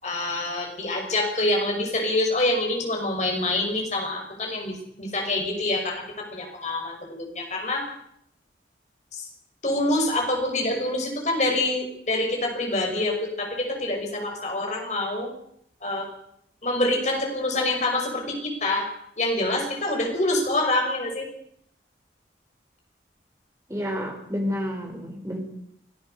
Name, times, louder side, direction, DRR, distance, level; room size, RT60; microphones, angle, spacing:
voice 1, 0.0-7.9 9.1-9.3 9.6-15.3 15.8-16.1 16.6-18.9 19.2-21.3, left 2 dB, 40° left, 2 dB, 6.0 m, -26 dB
voice 2, 23.7-25.4, equal, 15° right, 3 dB, 4.6 m, -30 dB
25.5 x 17.5 x 6.7 m, 0.73 s
head